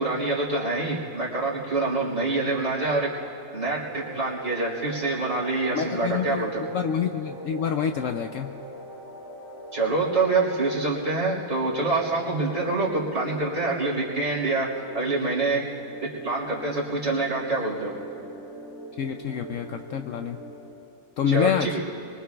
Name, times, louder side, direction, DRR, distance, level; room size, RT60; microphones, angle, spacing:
voice 1, 0.0-3.1 3.5-6.6 9.7-14.7 14.9-15.6 16.2-17.9 21.3-21.8, right 3 dB, 45° right, -7 dB, 3.6 m, -26 dB
sound 1, 3.6-20.7, right 1 dB, 20° right, 2.8 m, -41 dB
voice 2, 5.7-8.5 19.0-20.4 21.2-21.8, left 8 dB, 70° left, 6 dB, 0.8 m, -27 dB
24.5 x 23.5 x 2.3 m, 2.8 s
omnidirectional pair, 1.7 m